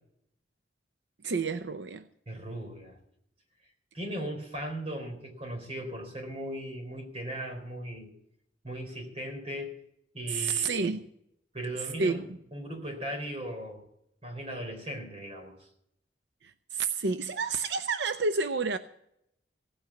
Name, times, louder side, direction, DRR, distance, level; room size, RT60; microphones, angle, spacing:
voice 1, 1.2-2.0 10.3-11.1 12.0-12.2 16.4-18.8, right 4 dB, 80° right, 10 dB, 0.6 m, -29 dB
voice 2, 2.3-3.0 3.9-8.1 8.6-9.7 10.1-10.7 11.5-12.2 12.5-13.8 14.2-15.6, right 1 dB, 35° right, 3 dB, 3.8 m, -37 dB
16.5 x 8.7 x 7.1 m, 0.75 s
head